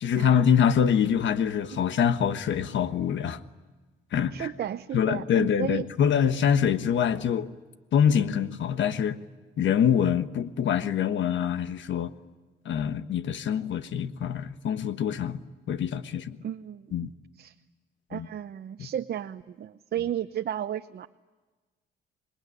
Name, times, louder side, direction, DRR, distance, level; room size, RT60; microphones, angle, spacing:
voice 1, 0.0-3.4 4.1-4.5 4.9-7.5 7.9-9.2 9.6-12.1 12.6-15.4 15.7-16.4 16.9-17.1 18.1-18.3 18.8-18.9, left 8 dB, 70° left, 1.4 m, -25 dB
voice 2, 4.3-5.9 16.4-17.1 17.4-17.5 18.1-21.1, right 10 dB, 55° right, 0.8 m, -33 dB
26.5 x 21.0 x 10.0 m
cardioid pair, 90°, 20 cm